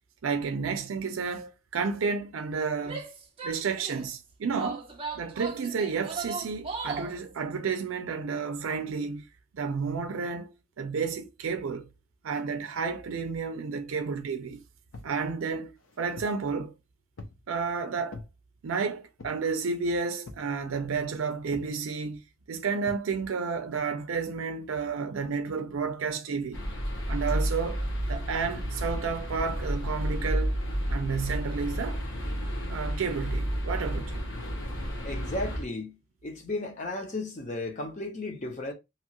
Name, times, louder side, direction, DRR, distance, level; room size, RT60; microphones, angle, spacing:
voice 1, 0.2-3.0 3.4-4.8 5.2-9.2 9.5-11.9 12.2-14.6 15.0-15.7 16.0-16.7 17.5-18.2 18.6-22.2 22.5-26.6 27.1-30.5 30.9-32.0 32.7-34.3, right 5 dB, 75° right, 0.4 m, -31 dB
Female speech woman speaking / Yell, 2.8-4.1 4.5-7.2, right 4 dB, 25° right, 0.5 m, -37 dB
sound 1, 14.9-15.2 15.8-16.4 17.2-17.5 18.1-18.3 19.2-19.5 20.3-20.5 21.5-21.8 22.9-23.1, left 2 dB, 80° left, 0.6 m, -45 dB
sound 2, 26.5-35.6, equal, 65° left, 1.0 m, -31 dB
voice 2, 35.0-36.0 36.2-38.7, left 2 dB, 35° left, 0.6 m, -34 dB
2.9 x 2.3 x 2.8 m
head